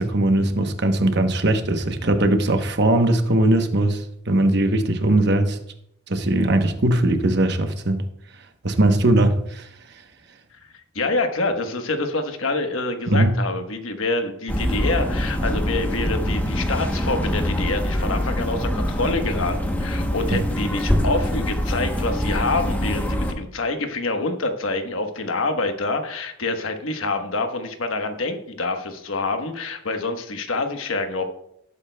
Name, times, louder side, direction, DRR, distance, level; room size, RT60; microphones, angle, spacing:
voice 1, 0.0-5.6 6.1-8.0 8.6-9.7 13.1-13.3 20.3-20.4, right 1 dB, 55° right, 1.0 m, -20 dB
voice 2, 10.9-31.2, left 3 dB, 80° left, 1.2 m, -26 dB
sound 1, 14.5-23.3, equal, 10° left, 0.9 m, -24 dB
17.5 x 8.4 x 2.3 m
head